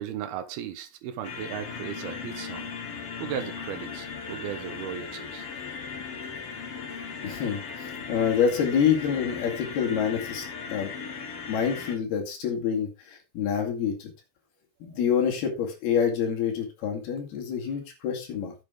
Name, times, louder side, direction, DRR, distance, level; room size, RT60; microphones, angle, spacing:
voice 1, 0.0-2.7 3.2-5.6 7.0-7.1, right 9 dB, 75° right, 2.8 m, -36 dB
sound 1, 1.2-12.0, left 6 dB, 50° left, 1.9 m, -37 dB
voice 2, 7.2-10.9 11.5-14.1 14.9-18.5, left 7 dB, 75° left, 4.3 m, -27 dB
10.5 x 8.3 x 3.7 m
omnidirectional pair, 4.6 m